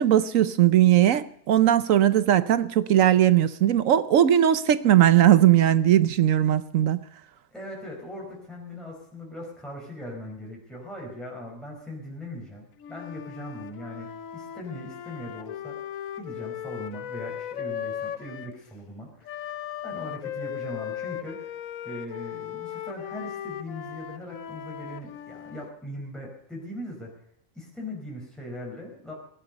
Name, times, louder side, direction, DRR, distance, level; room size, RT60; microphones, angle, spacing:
voice 1, 0.0-7.0, right 11 dB, 75° right, 1.1 m, -19 dB
voice 2, 7.5-15.8 16.2-19.4 19.8-21.6 21.8-27.1 27.5-29.1, left 1 dB, ahead, 4.8 m, -40 dB
Wind instrument woodwind instrument, 12.8-18.6 19.2-25.7, left 10 dB, 80° left, 1.2 m, -37 dB
19.0 x 12.0 x 5.3 m
omnidirectional pair, 1.4 m